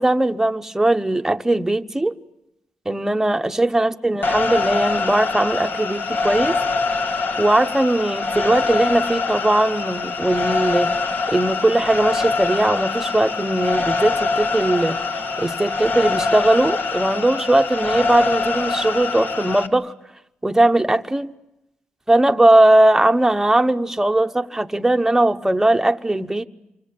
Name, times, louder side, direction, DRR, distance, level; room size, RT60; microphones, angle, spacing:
voice 1, 0.0-2.1 2.9-6.6 7.4-10.9 11.3-19.9 20.4-21.3 22.1-26.5, right 1 dB, 10° right, 1.0 m, -19 dB
sound 1, 4.2-19.7, left 4 dB, 60° left, 1.7 m, -24 dB
27.5 x 25.0 x 8.7 m
cardioid pair, 95°, 4 cm